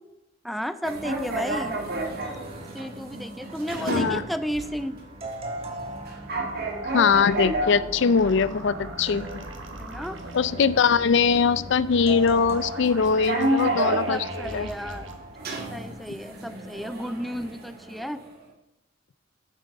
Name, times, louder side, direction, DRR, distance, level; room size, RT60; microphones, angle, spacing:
voice 1, 0.4-1.8 2.7-5.0 9.8-10.2 14.1-15.1 15.7-18.2, equal, ahead, 11 dB, 0.3 m, -33 dB
sound 1, 0.8-18.4, right 1 dB, 50° right, 1.9 m, -33 dB
sound 2, 2.2-15.9, right 2 dB, 30° right, 1.5 m, -40 dB
voice 2, 3.8-4.3 6.9-9.4 10.3-14.7, left 5 dB, 65° left, 17 dB, 0.4 m, -22 dB
sound 3, 7.0-15.1, right 1 dB, 70° right, 1.5 m, -41 dB
9.3 x 7.3 x 5.3 m, 0.91 s
head